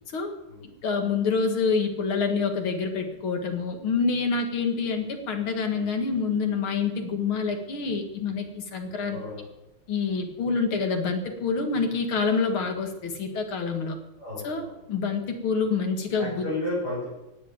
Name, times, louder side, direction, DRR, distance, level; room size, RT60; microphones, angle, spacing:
voice 1, 0.8-9.2 9.9-14.0 14.4-16.4, left 5 dB, 70° left, 5 dB, 2.8 m, -27 dB
voice 2, 8.9-9.4 14.2-14.7 16.2-17.1, left 1 dB, 45° left, -9 dB, 7.9 m, -33 dB
18.0 x 8.0 x 8.8 m, 0.93 s
omnidirectional pair, 2.4 m